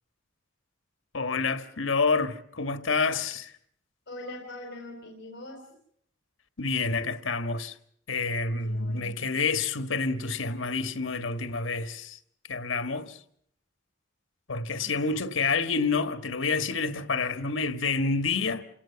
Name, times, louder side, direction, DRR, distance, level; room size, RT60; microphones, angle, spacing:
voice 1, 1.1-3.5 6.6-7.8 8.1-12.2 12.5-13.2 14.5-18.6, left 4 dB, 85° left, 1.5 m, -28 dB
voice 2, 4.1-5.6 8.6-9.3 14.8-15.1, left 1 dB, 60° left, 4.3 m, -42 dB
29.0 x 18.0 x 6.9 m
head